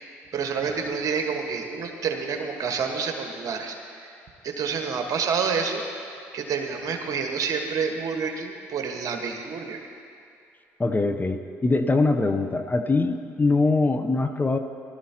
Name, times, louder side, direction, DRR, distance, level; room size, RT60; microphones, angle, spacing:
voice 1, 0.3-3.8 4.4-5.8 6.3-9.8, right 5 dB, 55° right, 3 dB, 1.5 m, -28 dB
voice 2, 10.8-14.6, left 3 dB, 25° left, 7 dB, 0.8 m, -23 dB
18.5 x 12.5 x 2.9 m, 2.4 s
hypercardioid pair, 55°, 7 cm